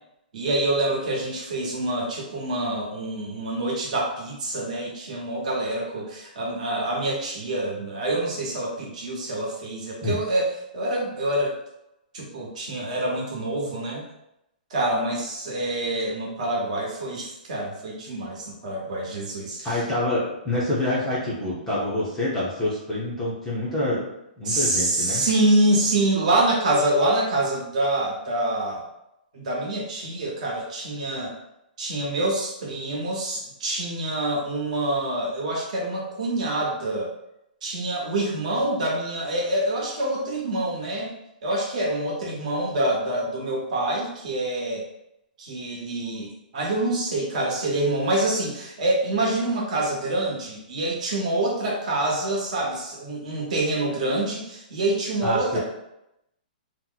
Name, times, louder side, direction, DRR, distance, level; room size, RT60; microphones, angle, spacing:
voice 1, 0.3-11.5 12.1-14.0 14.7-19.8 24.4-28.8 29.3-31.4 31.8-37.1 37.6-41.1 41.4-44.8 45.4-55.6, right 1 dB, 50° right, -3 dB, 1.1 m, -26 dB
voice 2, 19.6-24.1 24.4-25.3 55.2-55.6, left 1 dB, 5° left, -9 dB, 0.6 m, -26 dB
2.9 x 2.1 x 3.8 m, 0.83 s
hypercardioid pair, 170°, 5 cm